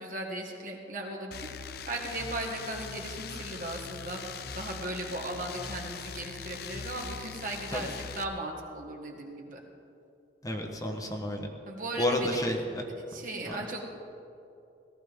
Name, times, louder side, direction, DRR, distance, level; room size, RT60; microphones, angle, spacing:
voice 1, 0.0-7.9 8.1-9.6 11.7-12.4 13.1-13.9, right 2 dB, 50° right, 0 dB, 1.8 m, -37 dB
sound 1, 1.3-8.2, left 6 dB, 60° left, 0.6 m, -41 dB
voice 2, 10.4-11.5 12.0-12.8 13.5-13.6, left 1 dB, 20° left, 2 dB, 1.0 m, -30 dB
18.0 x 13.5 x 3.6 m, 2.7 s
head